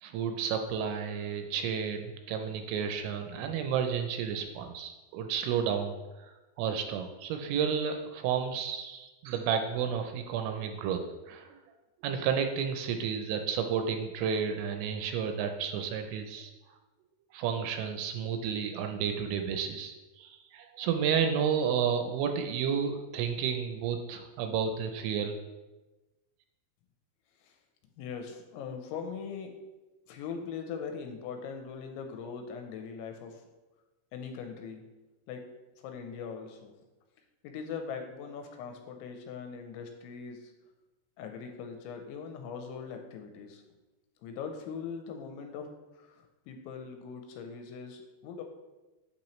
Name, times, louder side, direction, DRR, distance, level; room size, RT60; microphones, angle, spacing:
voice 1, 0.0-11.6 12.0-16.5 17.3-25.4, right 7 dB, 85° right, 5 dB, 2.8 m, -31 dB
voice 2, 28.0-29.5 30.1-33.4 34.1-34.8 35.3-35.4 35.8-36.7 37.4-40.5 41.2-43.6 44.2-45.7 46.0-48.4, left 6 dB, 85° left, 4 dB, 2.9 m, -41 dB
8.6 x 5.7 x 3.1 m, 1.1 s
omnidirectional pair, 5.6 m